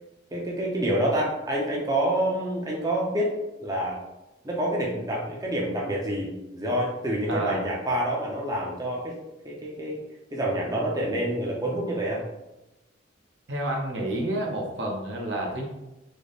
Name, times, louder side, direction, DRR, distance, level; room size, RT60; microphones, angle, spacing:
voice 1, 0.3-3.3 3.6-4.0 4.4-9.2 9.4-10.0 10.3-12.2, right 1 dB, 20° right, -3 dB, 0.5 m, -27 dB
voice 2, 7.3-7.7 13.5-15.7, right 1 dB, 65° right, 0 dB, 0.7 m, -29 dB
3.3 x 2.1 x 3.9 m, 0.97 s
head